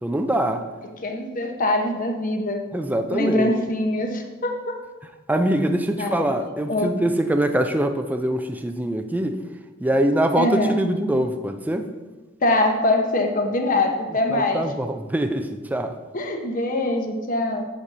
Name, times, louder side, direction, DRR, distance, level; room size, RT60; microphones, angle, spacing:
voice 1, 0.0-0.6 2.7-3.5 5.3-9.4 9.8-11.9 14.3-16.0, right 1 dB, 10° right, 7 dB, 0.4 m, -23 dB
voice 2, 1.0-2.6 3.1-4.8 6.0-6.9 10.4-10.8 12.4-14.6 16.1-17.7, left 2 dB, 40° left, 3 dB, 1.0 m, -23 dB
8.4 x 4.1 x 6.0 m, 1.3 s
head